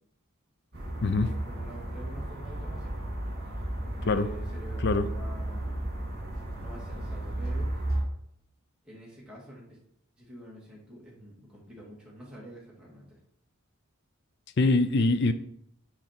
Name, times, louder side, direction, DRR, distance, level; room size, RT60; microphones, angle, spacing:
sound 1, 0.7-8.0, right 1 dB, 50° right, 2.9 m, -34 dB
voice 1, 1.2-3.0 3.9-5.9 6.6-7.7 8.8-9.8 10.2-13.2, equal, 5° right, -5 dB, 1.8 m, -47 dB
voice 2, 14.6-15.3, left 3 dB, 50° left, 12 dB, 0.5 m, -23 dB
6.3 x 4.3 x 4.4 m, 0.70 s
head